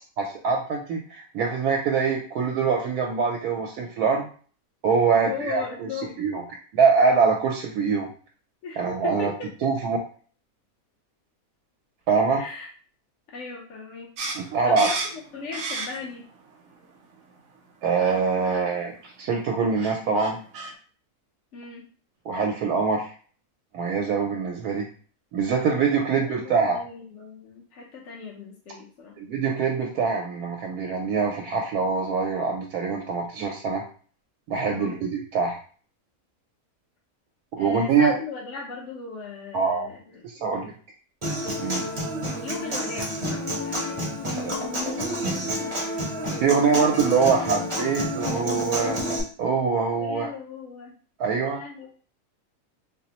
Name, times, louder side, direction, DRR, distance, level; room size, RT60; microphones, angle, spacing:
voice 1, 0.2-4.3 4.8-5.9 6.2-6.4 6.7-8.1 8.8-9.3 9.6-10.0 12.1-12.4 14.5-14.9 17.8-20.4 22.3-23.1 23.7-24.9 25.3-26.8 29.2-33.8 34.5-35.6 37.6-38.2 39.5-39.9 40.2-40.7 41.6-41.9 44.0-44.1 44.4-44.6 46.4-49.0 49.4-50.3 51.2-51.6, right 5 dB, 85° right, 1 dB, 1.1 m, -24 dB
voice 2, 5.1-6.2 8.6-9.5 12.3-12.7 13.3-14.1 14.6-16.3 21.5-21.9 26.2-29.2 34.7-35.0 37.6-40.2 40.5-40.7 42.4-45.8 50.0-51.0 51.4-51.9, left 5 dB, 60° left, -2 dB, 0.9 m, -38 dB
sound 1, 14.2-16.2 16.6-17.4 18.0-18.2 18.4-18.6 19.4-19.5 19.7-20.7, right 3 dB, 65° right, 0.8 m, -33 dB
Human voice / Acoustic guitar, 41.2-49.2, equal, 30° right, 0.6 m, -29 dB
4.1 x 2.0 x 2.8 m, 0.42 s
omnidirectional pair, 1.6 m